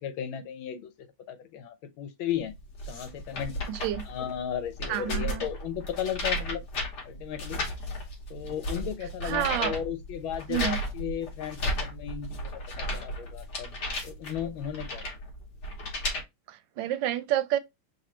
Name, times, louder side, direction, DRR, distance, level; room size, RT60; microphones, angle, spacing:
voice 1, 0.0-2.5 2.9-3.6 4.0-6.6 7.0-7.6 8.3-13.7 14.0-15.0, left 9 dB, 85° left, 1.6 m, -35 dB
sound 1, 2.5-16.2, left 1 dB, 60° left, 1.8 m, -34 dB
voice 2, 3.7-4.0 4.9-5.5 9.2-9.7 10.5-10.8 16.5-17.6, right 12 dB, 75° right, 1.2 m, -29 dB
4.1 x 2.7 x 4.3 m
omnidirectional pair, 2.2 m